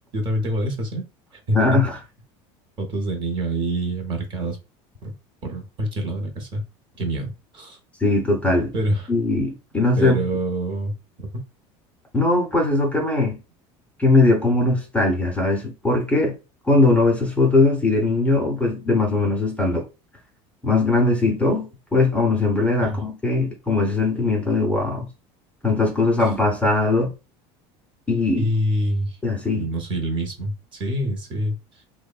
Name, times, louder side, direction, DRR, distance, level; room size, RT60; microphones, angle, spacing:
voice 1, 0.1-1.1 1.5-1.6 2.8-4.6 5.0-5.1 5.4-6.6 7.0-7.8 8.7-9.1 10.0-11.3 22.9-23.0 28.4-29.2 29.5-31.5, right 1 dB, 35° right, 0.8 m, -26 dB
voice 2, 1.5-2.0 8.0-8.7 9.1-10.2 12.1-13.4 14.0-16.4 16.7-19.8 20.6-25.1 25.6-27.1 28.1-28.5 29.2-29.7, left 2 dB, 10° left, 0.6 m, -20 dB
3.0 x 2.1 x 2.3 m
cardioid pair, 140°, 14 cm